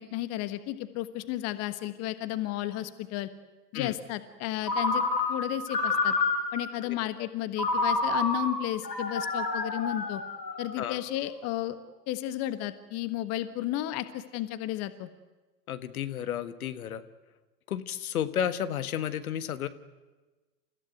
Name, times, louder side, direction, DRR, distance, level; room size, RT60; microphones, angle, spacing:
voice 1, 0.0-3.3 3.7-5.0 5.3-6.1 6.5-10.2 10.6-11.8 12.1-15.1, left 14 dB, 30° left, 12 dB, 1.4 m, -33 dB
Ringtone, 4.6-6.7 7.6-10.9, left 3 dB, 80° left, 4.7 m, -29 dB
voice 2, 15.7-17.0 17.7-19.7, left 9 dB, 60° left, 12 dB, 1.7 m, -32 dB
29.5 x 15.5 x 9.3 m, 1.2 s
figure-of-eight pair, 95°, 49 cm